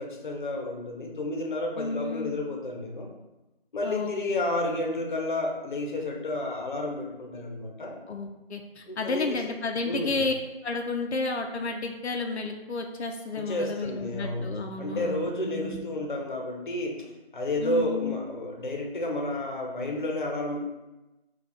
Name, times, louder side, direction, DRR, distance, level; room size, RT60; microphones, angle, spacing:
voice 1, 0.0-3.1 3.7-8.0 8.9-9.4 9.8-10.2 13.3-14.5 14.8-20.6, left 1 dB, 50° left, 1 dB, 0.8 m, -31 dB
voice 2, 1.8-2.4 3.8-4.1 8.1-10.3 10.6-15.8 17.6-18.2, left 3 dB, 85° left, 3 dB, 0.6 m, -31 dB
4.3 x 2.4 x 4.1 m, 1.0 s
figure-of-eight pair, 170°, 32 cm